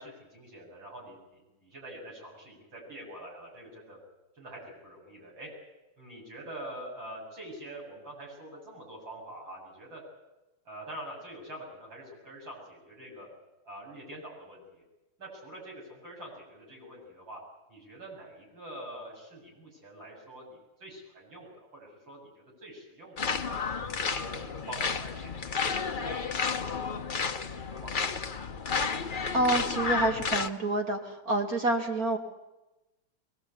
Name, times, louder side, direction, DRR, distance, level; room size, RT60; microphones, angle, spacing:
voice 1, 0.0-4.0 4.4-5.5 6.0-10.0 10.7-13.3 13.6-14.8 15.2-17.4 17.7-23.6 24.0-27.3 27.8-28.3, right 1 dB, 60° right, -3 dB, 8.8 m, -45 dB
sound 1, 23.2-30.5, left 5 dB, 75° left, 0.4 m, -31 dB
voice 2, 29.3-32.2, right 2 dB, 40° right, 2 dB, 2.9 m, -28 dB
22.5 x 19.5 x 8.7 m, 1.0 s
omnidirectional pair, 2.4 m